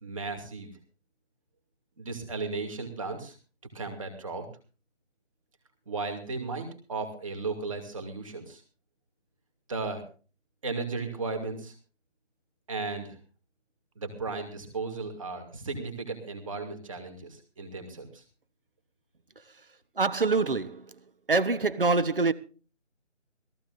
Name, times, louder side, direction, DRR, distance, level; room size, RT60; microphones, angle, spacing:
voice 1, 0.0-0.7 2.0-3.3 3.7-4.5 5.9-8.6 9.7-10.0 10.6-11.7 12.7-13.2 14.0-18.2, right 3 dB, 25° right, 2.6 m, -35 dB
voice 2, 20.0-20.9 21.3-22.3, right 3 dB, 45° right, 1.0 m, -25 dB
22.0 x 14.5 x 2.6 m
figure-of-eight pair, 160°, 37 cm